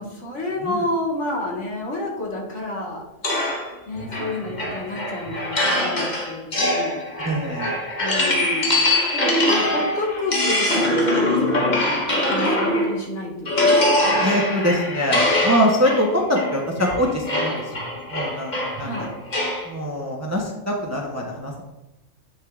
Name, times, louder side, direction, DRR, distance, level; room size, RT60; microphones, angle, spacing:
voice 1, 0.0-3.0 3.9-7.0 8.0-8.8 9.1-11.9 12.3-13.7 18.8-19.1, left 1 dB, 65° left, -3 dB, 1.8 m, -29 dB
sound 1, 3.2-13.0 13.5-19.7, left 1 dB, 40° left, 1.1 m, -23 dB
voice 2, 7.2-7.7 14.2-17.5 18.1-19.1 19.7-21.6, equal, 15° right, 0 dB, 0.6 m, -23 dB
8.2 x 6.3 x 2.4 m, 0.99 s
omnidirectional pair, 1.3 m